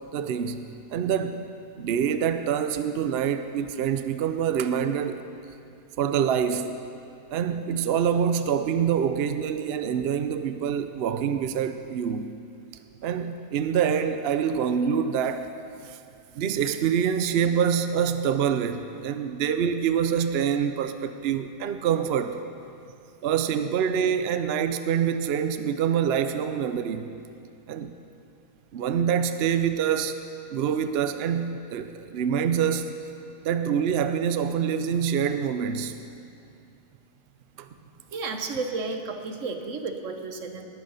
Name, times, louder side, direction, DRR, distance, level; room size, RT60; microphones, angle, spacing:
voice 1, 0.1-1.5 1.8-5.2 6.0-6.8 7.3-12.3 13.0-15.5 15.8-16.0 16.3-22.4 23.2-27.1 27.7-27.9 28.7-30.2 30.5-32.9 33.4-36.0 37.6-37.7, right 8 dB, 75° right, 9 dB, 0.5 m, -26 dB
voice 2, 38.1-40.7, right 3 dB, 50° right, 5 dB, 1.3 m, -32 dB
19.5 x 8.8 x 5.5 m, 2.5 s
omnidirectional pair, 1.8 m